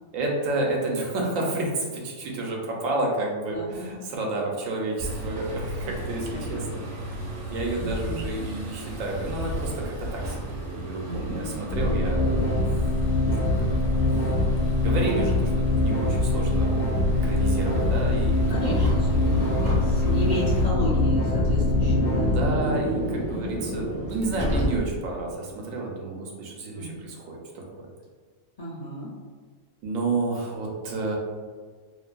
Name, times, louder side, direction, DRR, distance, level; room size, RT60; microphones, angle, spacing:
voice 1, 0.1-6.8 7.5-12.9 13.6-13.9 14.2-14.3 14.8-18.6 22.1-27.4 27.7-27.8 29.8-31.2, right 2 dB, 85° right, -1 dB, 1.0 m, -30 dB
voice 2, 3.5-4.0 6.3-6.7 7.8-8.3 11.0-11.6 18.3-22.4 23.1-23.4 26.8-27.0 28.6-29.1, equal, 55° left, -8 dB, 0.4 m, -33 dB
sound 1, 5.0-20.7, right 1 dB, 65° right, 0.9 m, -35 dB
sound 2, 11.7-22.5, left 2 dB, 85° left, 1.0 m, -23 dB
Car, 18.6-25.2, right 1 dB, 30° right, 0.3 m, -30 dB
2.6 x 2.5 x 2.2 m, 1.5 s
omnidirectional pair, 1.4 m